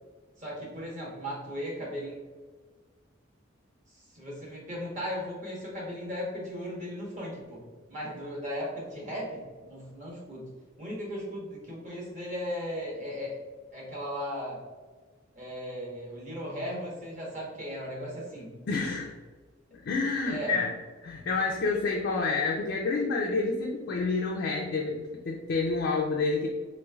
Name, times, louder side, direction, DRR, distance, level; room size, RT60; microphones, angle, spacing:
voice 1, 0.4-2.2 4.1-7.6 7.9-10.5 10.8-13.4 13.7-14.6 15.3-18.6 20.3-20.7, equal, 40° right, -5 dB, 1.1 m, -36 dB
voice 2, 18.7-19.1 19.7-20.7 21.0-26.5, left 4 dB, 60° left, -1 dB, 0.4 m, -28 dB
3.1 x 3.1 x 2.3 m, 1.4 s
head